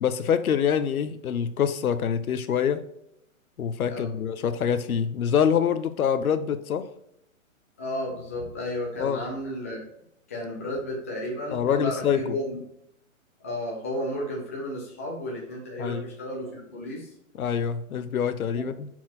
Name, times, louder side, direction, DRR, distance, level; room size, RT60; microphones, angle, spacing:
voice 1, 0.0-2.8 3.6-6.9 9.0-9.2 11.5-12.2 15.8-16.0 17.4-18.9, left 8 dB, 80° left, 12 dB, 0.8 m, -25 dB
voice 2, 3.9-4.2 7.8-9.8 10.3-12.6 13.4-17.1 18.5-18.7, left 1 dB, 10° left, -4 dB, 0.5 m, -33 dB
5.8 x 4.6 x 4.2 m, 0.76 s
hypercardioid pair, 170°, 42 cm